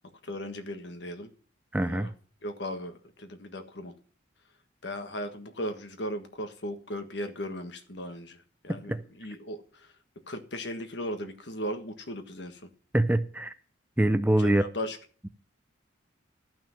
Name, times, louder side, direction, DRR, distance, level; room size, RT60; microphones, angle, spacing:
voice 1, 0.2-1.3 1.8-2.1 2.4-3.9 4.8-9.9 10.3-12.7 14.4-15.0, equal, 60° left, 1.5 m, -37 dB
voice 2, 1.7-2.1 8.7-9.0 12.9-13.5 14.0-14.6, right 1 dB, 10° right, 0.4 m, -24 dB
12.5 x 6.0 x 7.4 m
head